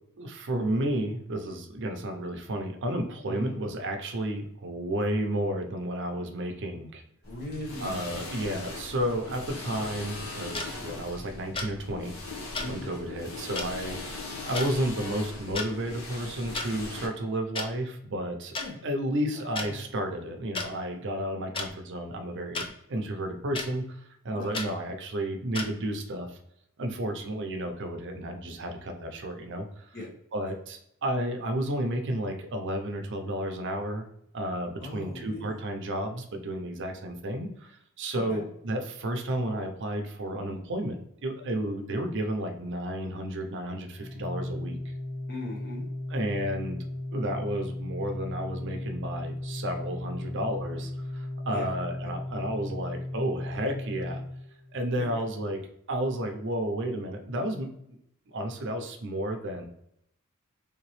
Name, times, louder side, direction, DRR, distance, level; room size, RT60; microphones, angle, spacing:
voice 1, 0.2-7.0 7.8-12.1 12.6-18.6 18.8-26.4 26.8-30.0 30.3-34.0 34.3-44.9 46.1-46.8 47.1-54.2 54.7-55.6 55.9-58.0 58.3-59.7, right 1 dB, 55° right, 4 dB, 0.6 m, -32 dB
voice 2, 3.2-3.6 7.3-8.1 12.6-12.9 18.6-18.8 19.6-19.8 24.3-24.6 29.9-30.1 30.4-30.5 34.8-35.6 38.1-38.4 45.3-45.9 51.4-51.7 52.0-52.2 55.0-55.2, left 1 dB, 45° left, -3 dB, 1.0 m, -39 dB
sound 1, 7.2-17.1, left 2 dB, 70° left, 1.1 m, -40 dB
sound 2, 10.5-10.7 11.6-11.7 12.5-12.7 13.6-13.7 14.5-14.7 15.4-15.7 16.5-16.7 17.6-17.7 18.5-18.7 19.6-19.7 20.5-20.7 21.5-21.7 22.5-22.7 23.5-23.7 24.5-24.7 25.5-25.7, left 3 dB, 25° left, 0.4 m, -32 dB
Organ, 44.0-54.9, left 1 dB, 5° right, 0.8 m, -36 dB
3.5 x 2.9 x 3.1 m, 0.74 s
head